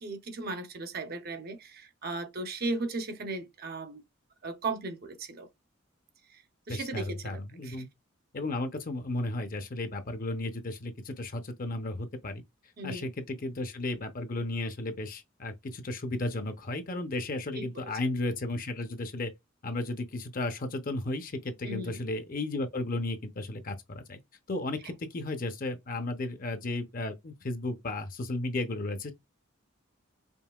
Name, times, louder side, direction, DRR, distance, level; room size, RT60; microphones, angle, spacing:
voice 1, 0.0-4.0 4.4-5.5 6.3-6.4 6.7-7.8 12.8-13.1 17.6-17.9 21.6-22.0 24.8-24.9, right 2 dB, 50° right, 0.7 m, -36 dB
voice 2, 6.7-7.9 8.3-12.4 12.8-19.3 19.6-24.2 24.5-29.1, left 2 dB, 45° left, 0.7 m, -34 dB
5.3 x 2.6 x 2.3 m
head